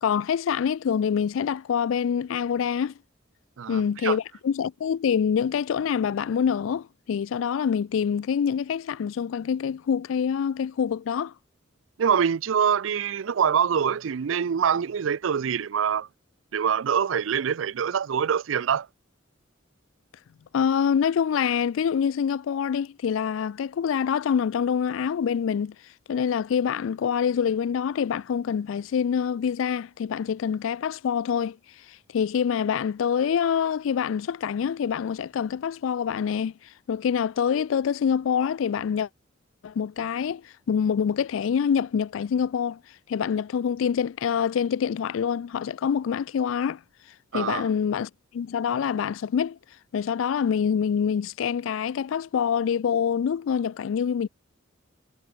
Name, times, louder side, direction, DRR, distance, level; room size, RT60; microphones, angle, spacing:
voice 1, 0.0-2.9 3.7-11.3 20.5-25.7 26.1-31.6 32.1-36.5 36.9-39.1 39.6-42.8 43.1-46.8 47.3-49.6 49.9-54.3, left 7 dB, 75° left, 0.3 m, -25 dB
voice 2, 3.6-4.2 12.0-16.1 16.5-18.9 47.3-47.6, right 7 dB, 75° right, 0.4 m, -25 dB
head